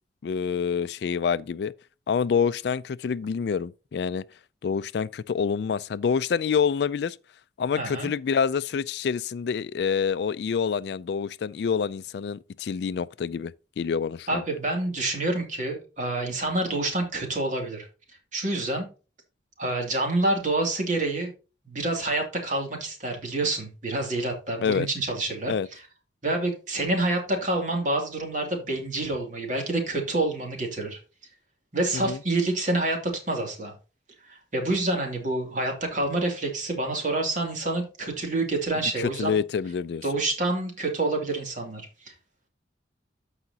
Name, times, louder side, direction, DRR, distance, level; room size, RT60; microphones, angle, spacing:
voice 1, 0.2-1.7 2.1-4.2 4.6-7.2 7.6-14.4 24.6-24.9 25.5-25.7 31.9-32.2 38.7-40.0, left 6 dB, 65° left, 0.3 m, -27 dB
voice 2, 7.8-8.1 14.3-17.9 18.3-18.9 19.6-21.3 21.6-25.5 26.2-31.0 31.7-33.7 34.3-39.3 40.0-42.1, right 2 dB, 45° right, 2.5 m, -27 dB
14.0 x 4.9 x 2.8 m
head